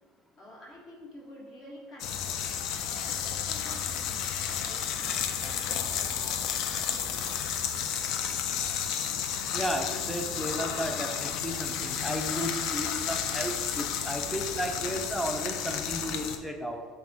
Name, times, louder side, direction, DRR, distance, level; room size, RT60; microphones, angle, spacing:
voice 1, 0.4-2.5 2.8-4.2 4.5-7.2, left 1 dB, 35° left, -3 dB, 1.3 m, -50 dB
sound 1, 2.0-16.4, left 8 dB, 60° left, 0.4 m, -32 dB
voice 2, 9.5-16.9, equal, ahead, 3 dB, 0.5 m, -34 dB
5.6 x 2.1 x 4.5 m, 1.5 s
supercardioid pair, 125°, 0 cm